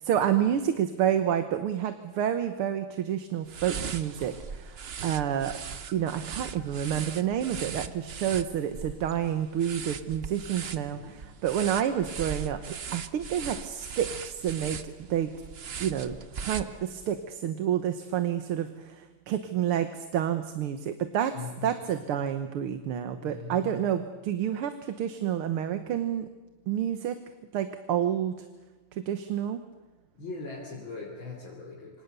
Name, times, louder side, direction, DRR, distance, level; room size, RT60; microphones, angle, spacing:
voice 1, 0.0-5.6 5.9-15.3 15.8-21.4 21.6-26.3 26.7-27.2 27.5-28.3 28.9-29.6, right 9 dB, 90° right, 9 dB, 2.1 m, -29 dB
sound 1, 3.5-17.2, right 6 dB, 55° right, 0.6 m, -39 dB
voice 2, 21.3-21.8 23.1-23.9 30.1-32.0, left 4 dB, 65° left, -2 dB, 4.0 m, -41 dB
27.0 x 26.0 x 6.8 m, 1.2 s
omnidirectional pair, 2.3 m